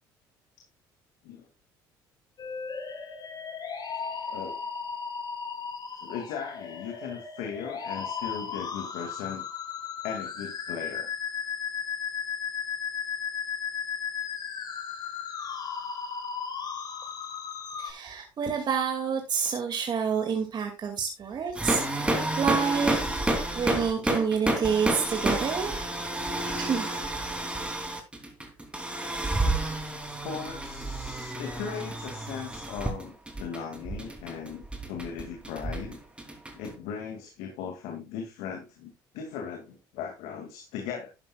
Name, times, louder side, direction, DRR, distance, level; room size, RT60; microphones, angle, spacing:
sound 1, 2.4-17.9, left 6 dB, 45° left, 6.2 m, -35 dB
voice 1, 4.3-4.6 6.0-9.4 10.0-11.1 30.1-36.0 36.5-41.1, left 7 dB, 80° left, 2.3 m, -38 dB
voice 2, 17.8-23.0 23.5-25.8 26.6-26.9, right 6 dB, 45° right, 2.3 m, -28 dB
sound 2, 21.5-36.7, right 1 dB, 10° right, 3.2 m, -30 dB
11.0 x 11.0 x 2.4 m
supercardioid pair, 75°, 10 cm